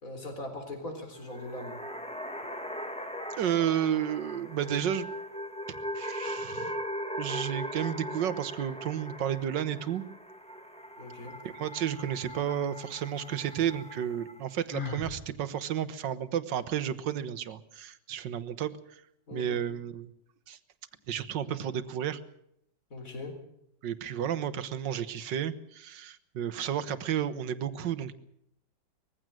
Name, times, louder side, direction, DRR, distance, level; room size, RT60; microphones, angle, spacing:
voice 1, 0.0-1.8 11.0-11.4 19.3-19.6 22.9-23.4, left 2 dB, 50° left, 5 dB, 4.4 m, -40 dB
sound 1, 1.1-14.5, equal, 5° left, 1.5 m, -39 dB
voice 2, 3.4-5.1 5.7-6.8 7.2-10.0 11.4-19.0 19.3-20.1 20.5-20.6 21.1-22.2 23.8-28.1, right 9 dB, 85° right, 14 dB, 1.7 m, -32 dB
Sigh, 14.7-15.2, left 4 dB, 30° left, 2.1 m, -35 dB
20.5 x 15.5 x 9.0 m, 0.76 s
omnidirectional pair, 1.9 m